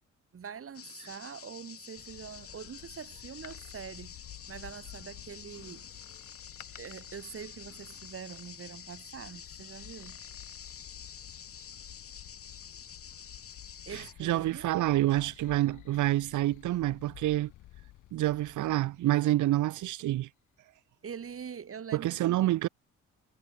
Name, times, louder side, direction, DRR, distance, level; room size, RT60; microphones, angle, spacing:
voice 1, 0.3-4.1 4.5-5.9 6.8-10.2 13.9-14.7 21.0-22.5, right 7 dB, 45° right, 4.8 m, -44 dB
sound 1, 0.7-14.1, left 8 dB, 50° left, 2.8 m, -48 dB
sound 2, 1.9-19.9, left 15 dB, 90° left, 5.5 m, -53 dB
Door, 3.3-5.0 6.0-8.9 9.8-10.9 11.2-11.3, left 10 dB, 65° left, 5.3 m, -58 dB
voice 2, 13.9-17.5 18.1-20.3 21.9-22.7, right 15 dB, 75° right, 1.0 m, -28 dB
cardioid pair, 90°, 30 cm